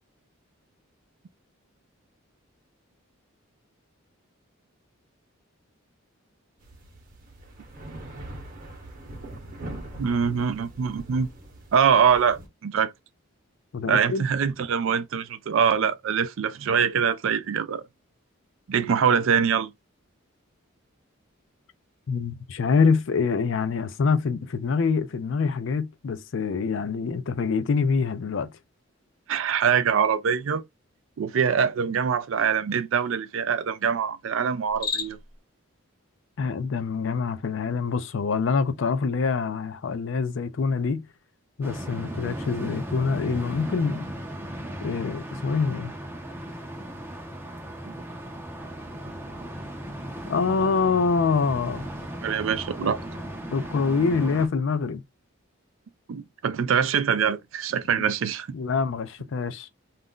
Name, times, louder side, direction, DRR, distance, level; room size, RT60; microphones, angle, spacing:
sound 1, 6.6-12.5, right 1 dB, 40° right, 0.9 m, -42 dB
voice 1, 10.0-11.3 11.7-12.9 13.8-17.8 18.7-19.7 29.3-30.6 31.2-35.2 47.9-48.0 52.2-53.0 56.1-58.5, right 7 dB, 65° right, 0.4 m, -24 dB
voice 2, 13.7-14.2 22.1-28.5 36.4-41.0 41.6-44.1 44.8-45.9 50.3-51.9 52.8-52.9 53.5-55.0 58.0-58.1 58.5-59.7, left 5 dB, 60° left, 0.4 m, -25 dB
Cricket, 34.6-35.4, left 5 dB, 45° left, 0.8 m, -32 dB
sound 2, 41.6-54.5, right 1 dB, 10° right, 0.5 m, -36 dB
2.4 x 2.1 x 3.6 m
head